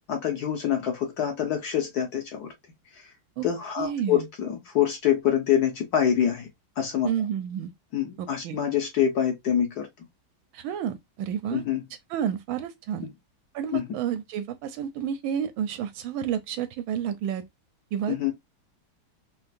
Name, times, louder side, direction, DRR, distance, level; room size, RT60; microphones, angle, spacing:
voice 1, 0.1-2.5 3.4-6.5 6.8-7.1 7.9-9.9 11.5-11.8 13.7-13.8 18.1-18.3, left 9 dB, 60° left, 1.3 m, -25 dB
voice 2, 3.8-4.3 7.0-7.7 8.2-8.6 10.5-11.6 12.1-13.1 13.5-17.4 17.9-18.3, right 9 dB, 80° right, 1.4 m, -30 dB
4.5 x 2.0 x 2.5 m
omnidirectional pair, 2.2 m